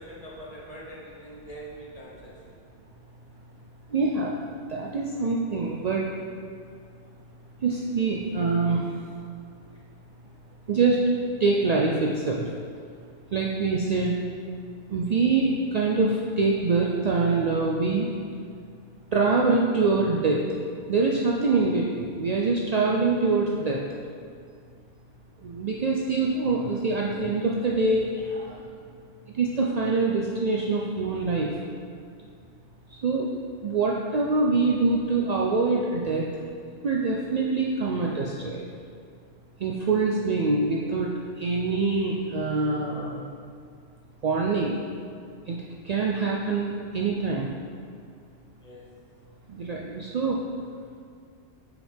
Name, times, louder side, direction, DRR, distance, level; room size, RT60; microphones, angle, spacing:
voice 1, 0.0-2.6 39.9-40.0 48.6-48.9, equal, 35° left, -5 dB, 1.0 m, -43 dB
voice 2, 3.9-4.4 4.7-6.1 7.6-8.8 10.7-11.0 11.4-12.5 13.3-14.1 14.9-18.1 19.1-20.4 20.9-23.8 25.4-28.6 29.3-31.5 33.0-33.3 33.6-36.3 36.8-38.6 39.6-41.1 41.4-43.2 44.2-44.8 45.5-45.6 45.8-47.5 49.5-50.4, right 3 dB, 75° right, -2 dB, 0.3 m, -24 dB
6.1 x 4.9 x 3.4 m, 2.2 s
omnidirectional pair, 1.2 m